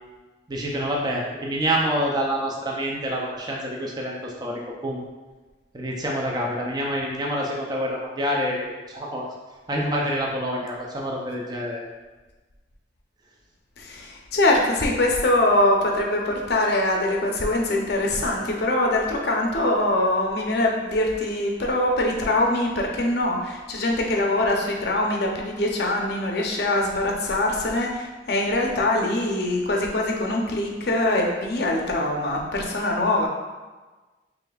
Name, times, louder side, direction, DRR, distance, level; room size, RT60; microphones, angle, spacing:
voice 1, 0.5-5.0 5.7-9.3 9.7-11.8, equal, 20° right, -2 dB, 0.5 m, -27 dB
voice 2, 13.8-33.3, left 1 dB, 60° left, 1 dB, 0.6 m, -23 dB
4.9 x 3.1 x 2.3 m, 1.3 s
head